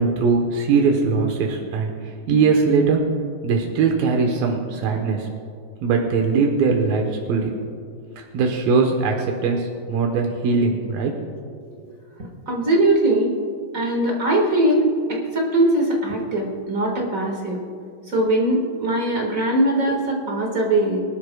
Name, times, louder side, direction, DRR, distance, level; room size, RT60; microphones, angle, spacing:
voice 1, 0.0-1.9 2.3-3.0 3.4-5.3 5.8-7.5 8.3-11.1, right 4 dB, 85° right, 2 dB, 2.9 m, -20 dB
voice 2, 12.5-13.4 13.7-17.6 18.1-21.0, right 1 dB, 40° right, -1 dB, 1.3 m, -21 dB
23.5 x 12.5 x 2.3 m, 2.2 s
omnidirectional pair, 4.0 m